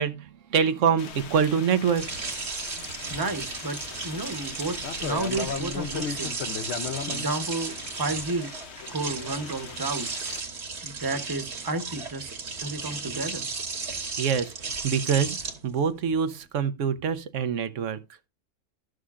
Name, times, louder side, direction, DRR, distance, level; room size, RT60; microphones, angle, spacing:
voice 1, 0.0-2.1 14.2-15.4 15.6-18.0, right 7 dB, 85° right, 1.1 m, -25 dB
sound 1, 1.0-10.4, left 6 dB, 65° left, 1.0 m, -37 dB
sound 2, 2.0-16.4, right 4 dB, 65° right, 1.6 m, -35 dB
voice 2, 3.1-3.8 4.0-6.4 7.1-8.5 8.9-10.1 10.8-12.3 12.6-13.5, right 2 dB, 20° right, 0.9 m, -31 dB
12.5 x 6.4 x 2.4 m
omnidirectional pair, 1.3 m